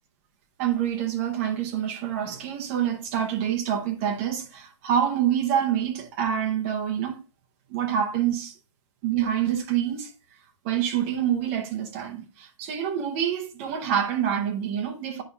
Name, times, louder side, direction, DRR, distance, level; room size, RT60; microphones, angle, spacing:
voice 1, 0.6-7.2 7.7-8.5 9.0-10.1 10.6-15.2, right 9 dB, 25° right, 0.7 m, -26 dB
10.0 x 5.1 x 2.3 m
hypercardioid pair, 175°, 17 cm